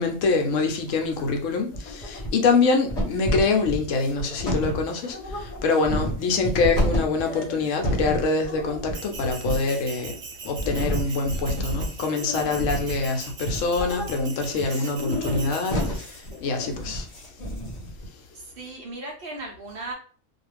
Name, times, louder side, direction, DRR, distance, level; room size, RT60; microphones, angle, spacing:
voice 1, 0.0-10.2 10.4-17.1, left 4 dB, 75° left, 0.9 m, -25 dB
sound 1, 0.9-1.4 1.7-2.6 2.9-18.1, equal, 35° left, 1.0 m, -30 dB
Bell, 8.9-16.4, right 4 dB, 85° right, 1.1 m, -41 dB
voice 2, 18.3-19.9, right 2 dB, 55° right, 0.8 m, -36 dB
2.4 x 2.3 x 3.2 m
omnidirectional pair, 1.4 m